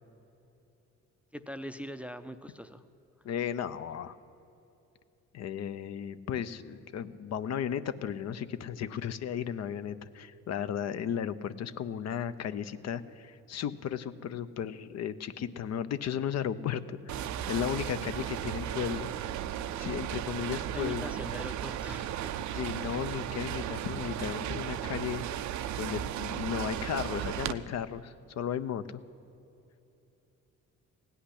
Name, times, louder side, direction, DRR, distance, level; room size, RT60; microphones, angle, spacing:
voice 1, 1.3-2.8 20.7-22.5, equal, 5° right, 9 dB, 0.5 m, -42 dB
voice 2, 3.2-4.2 5.3-19.1 19.8-21.1 22.5-25.4 25.8-28.8, left 9 dB, 60° left, 12 dB, 0.6 m, -35 dB
sound 1, 17.1-27.5, right 10 dB, 70° right, 0.5 m, -35 dB
16.5 x 5.8 x 10.0 m, 2.9 s
cardioid pair, 90°, 30 cm